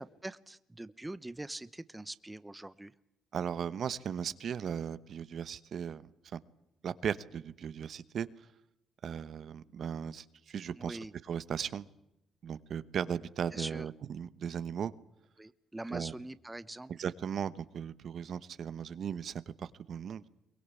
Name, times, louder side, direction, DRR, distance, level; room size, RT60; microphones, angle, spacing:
voice 1, 0.0-2.9 10.8-11.1 13.5-13.9 15.4-16.9, right 2 dB, 10° right, 15 dB, 0.9 m, -43 dB
voice 2, 3.3-6.4 6.8-8.3 9.0-11.8 12.4-14.9 15.9-16.1 16.9-20.2, right 8 dB, 60° right, 15 dB, 1.1 m, -37 dB
23.0 x 20.0 x 8.4 m, 0.84 s
cardioid pair, 90°, 0 cm